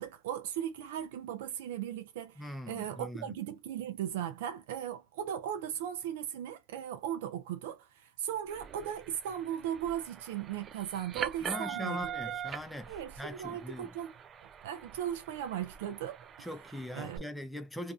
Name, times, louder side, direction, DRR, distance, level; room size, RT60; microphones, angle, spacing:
voice 1, 0.0-12.0 12.3-12.4 12.9-14.2 14.6-16.5 16.9-17.2, right 10 dB, 75° right, 0.6 m, -37 dB
voice 2, 2.4-3.3 11.4-13.9 16.4-17.9, left 1 dB, 5° left, 0.6 m, -41 dB
sound 1, 8.5-17.2, right 8 dB, 35° right, 0.3 m, -43 dB
2.6 x 2.3 x 2.4 m
supercardioid pair, 105°, 0 cm